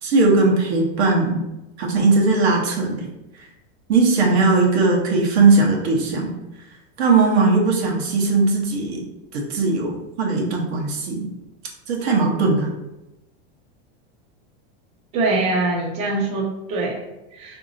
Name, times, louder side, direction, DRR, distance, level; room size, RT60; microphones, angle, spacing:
voice 1, 0.0-1.4 1.8-3.1 3.9-6.3 7.0-9.0 9.5-9.9 10.2-11.3 11.9-12.7, right 3 dB, 85° right, -1 dB, 1.1 m, -18 dB
voice 2, 15.1-17.6, right 2 dB, 20° right, 0 dB, 0.4 m, -24 dB
3.8 x 2.9 x 2.6 m, 0.96 s
supercardioid pair, 155°, 32 cm